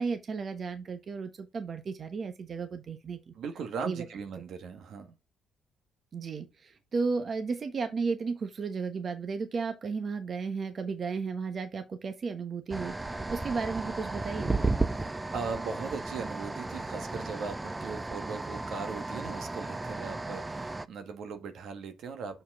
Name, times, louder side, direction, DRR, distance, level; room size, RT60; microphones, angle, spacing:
voice 1, 0.0-3.3 3.8-4.1 6.1-12.9 13.3-14.7, right 4 dB, 45° right, 1.1 m, -34 dB
voice 2, 3.3-5.2 15.0-22.4, right 5 dB, 70° right, 1.4 m, -39 dB
sound 1, 12.7-20.9, right 2 dB, 15° right, 0.5 m, -34 dB
6.9 x 4.4 x 3.6 m
cardioid pair, 90°, 0 cm